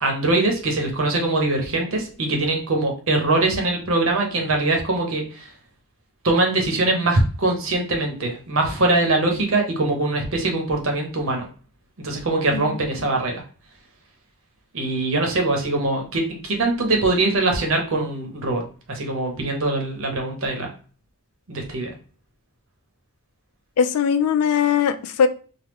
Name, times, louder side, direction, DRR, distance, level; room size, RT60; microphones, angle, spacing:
voice 1, 0.0-5.5 6.2-11.4 12.0-13.4 14.7-18.6 18.9-20.7 21.5-21.9, right 2 dB, 60° right, 0.8 m, -22 dB
voice 2, 23.8-25.3, left 7 dB, 85° left, 0.4 m, -20 dB
3.5 x 2.2 x 3.0 m
head